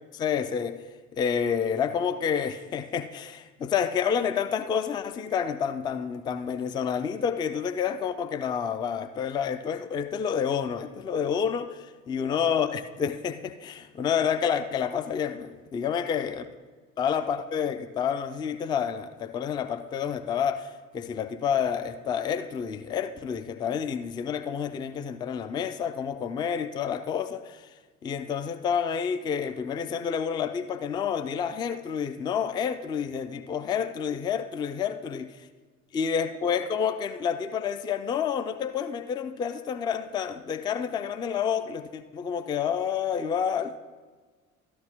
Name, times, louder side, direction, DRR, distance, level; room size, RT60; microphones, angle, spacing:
voice 1, 0.1-0.9 1.1-16.4 17.0-27.7 28.0-35.3 35.9-43.8, left 7 dB, 10° left, 0.3 m, -29 dB
13.0 x 11.0 x 2.9 m
figure-of-eight pair, 60°, 39 cm